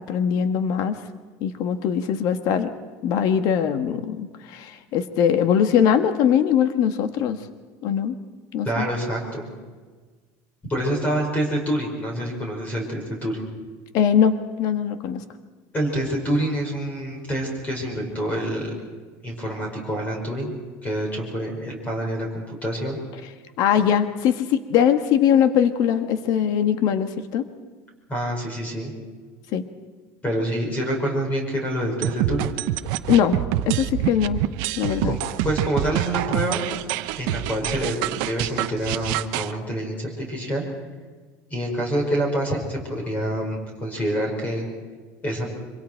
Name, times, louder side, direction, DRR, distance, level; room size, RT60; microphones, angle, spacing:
voice 1, 0.1-1.0 1.4-2.7 3.0-7.4 7.8-8.2 8.5-8.9 13.9-15.2 23.6-27.4 29.5-29.6 33.1-33.4 33.7-34.4 34.8-35.2, left 8 dB, 50° left, 8 dB, 1.6 m, -21 dB
voice 2, 8.7-9.5 10.7-13.4 15.7-18.7 19.2-20.5 20.8-23.0 28.1-28.9 30.2-32.5 35.1-35.2 35.4-38.0 38.2-40.6 41.5-44.7 45.2-45.5, right 1 dB, 20° left, 1 dB, 5.1 m, -27 dB
sound 1, 32.0-39.5, right 14 dB, 60° right, 0.9 m, -26 dB
26.5 x 25.0 x 4.6 m, 1.4 s
cardioid pair, 160°, 8 cm